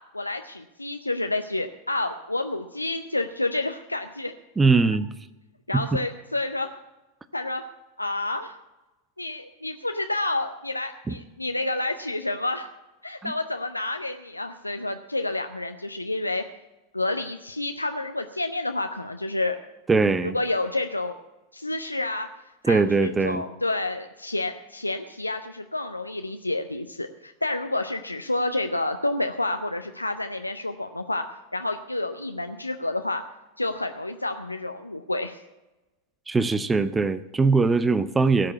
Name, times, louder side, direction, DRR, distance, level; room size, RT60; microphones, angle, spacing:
voice 1, 0.0-4.3 5.7-6.8 7.3-7.6 8.0-8.6 9.2-12.7 13.0-16.4 16.9-19.6 20.2-21.1 21.5-22.3 22.6-31.3 31.5-33.2 33.6-35.4, left 2 dB, 85° left, 6 dB, 0.6 m, -29 dB
voice 2, 4.6-5.1 5.7-5.8 11.1-11.2 13.2-13.3 19.9-20.4 22.6-23.4 36.3-38.5, right 4 dB, 15° right, 14 dB, 0.6 m, -21 dB
17.5 x 6.7 x 8.2 m, 1.0 s
figure-of-eight pair, 90°, 0 cm